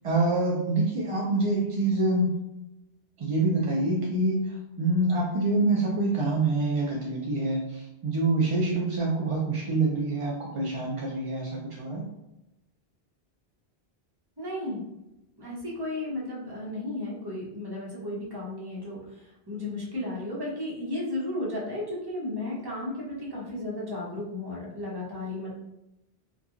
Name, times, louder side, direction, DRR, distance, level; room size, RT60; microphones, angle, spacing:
voice 1, 0.0-2.4 3.2-12.1, right 2 dB, 55° right, -3 dB, 0.3 m, -26 dB
voice 2, 14.4-14.8 15.4-25.5, left 1 dB, 25° right, -5 dB, 0.7 m, -34 dB
2.8 x 2.2 x 2.4 m, 0.92 s
omnidirectional pair, 1.0 m